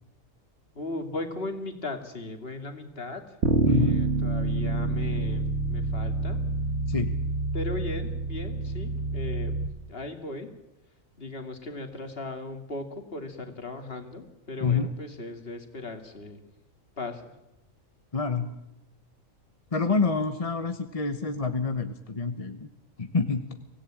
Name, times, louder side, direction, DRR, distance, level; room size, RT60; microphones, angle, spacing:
voice 1, 0.7-6.4 7.5-10.5 11.2-16.4 17.0-17.2 19.9-20.1, left 2 dB, 45° left, 6 dB, 2.6 m, -37 dB
Bass guitar, 3.4-9.7, right 3 dB, 55° right, 1.9 m, -27 dB
voice 2, 3.6-4.0 6.9-7.1 14.6-14.9 18.1-18.5 19.7-22.7 23.0-23.4, left 4 dB, 30° left, 8 dB, 1.0 m, -27 dB
24.5 x 17.0 x 8.8 m, 0.90 s
omnidirectional pair, 1.4 m